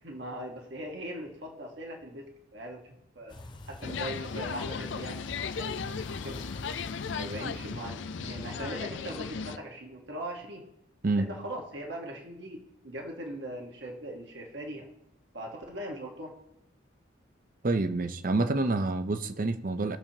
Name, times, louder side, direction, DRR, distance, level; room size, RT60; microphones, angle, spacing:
voice 1, 0.0-3.4 3.7-5.3 5.5-6.4 7.1-10.6 11.2-14.9 15.3-16.3, right 1 dB, 65° right, 1.4 m, -40 dB
sound 1, 3.3-8.7, left 2 dB, 25° left, 0.6 m, -45 dB
sound 2, 3.8-9.6, left 6 dB, 75° left, 0.5 m, -36 dB
voice 2, 17.6-20.0, right 2 dB, 45° right, 0.6 m, -27 dB
21.0 x 7.0 x 2.9 m
head